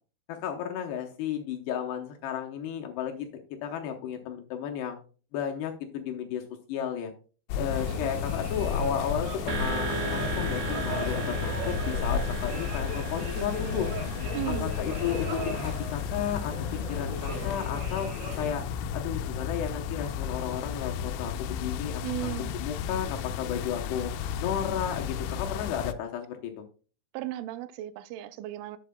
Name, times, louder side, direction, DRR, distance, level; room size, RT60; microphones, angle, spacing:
voice 1, 0.3-3.3 3.6-5.0 5.3-6.4 6.7-7.1 7.5-13.9 14.5-16.5 16.9-18.1 18.4-18.6 18.9-24.1 24.4-26.5, left 9 dB, 75° left, 2.7 m, -33 dB
sound 1, 7.5-25.9, left 7 dB, 90° left, 3.0 m, -33 dB
sound 2, 7.7-18.5, right 1 dB, 35° right, 3.1 m, -38 dB
sound 3, 9.5-17.3, right 4 dB, 60° right, 2.0 m, -37 dB
voice 2, 14.3-14.7 22.0-22.6 27.1-28.8, right 14 dB, 90° right, 3.0 m, -36 dB
10.5 x 8.4 x 2.2 m
omnidirectional pair, 5.4 m